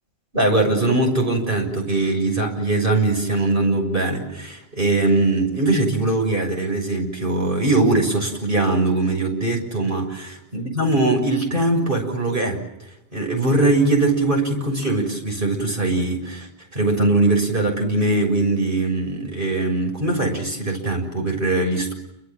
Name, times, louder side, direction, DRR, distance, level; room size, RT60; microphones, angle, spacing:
voice 1, 0.3-10.2 10.5-12.6 13.1-21.9, right 2 dB, 55° right, 2 dB, 7.0 m, -21 dB
29.0 x 25.0 x 7.5 m, 0.88 s
omnidirectional pair, 1.1 m